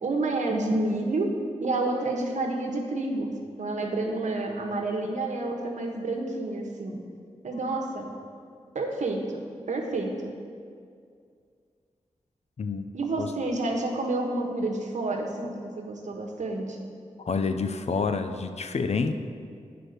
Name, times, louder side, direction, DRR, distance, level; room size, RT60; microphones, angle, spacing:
voice 1, 0.0-3.3 3.6-7.0 7.4-8.1 8.7-10.3 12.9-16.9, right 2 dB, 80° right, 2 dB, 1.2 m, -29 dB
voice 2, 17.2-19.1, left 4 dB, 60° left, 8 dB, 0.6 m, -28 dB
8.9 x 4.8 x 6.6 m, 2.2 s
cardioid pair, 40°, 12 cm